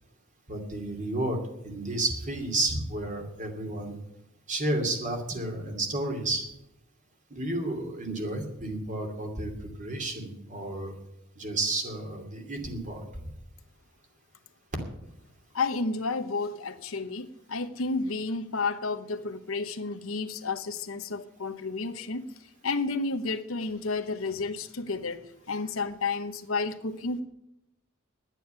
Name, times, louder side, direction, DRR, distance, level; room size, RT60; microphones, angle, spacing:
voice 1, 0.5-1.4 1.6-4.0 4.5-6.4 7.3-10.9 11.4-13.0, right 2 dB, 40° right, 3 dB, 2.7 m, -31 dB
voice 2, 15.5-22.3 22.6-27.2, left 3 dB, 90° left, 9 dB, 1.0 m, -31 dB
11.0 x 9.1 x 8.7 m, 0.84 s
head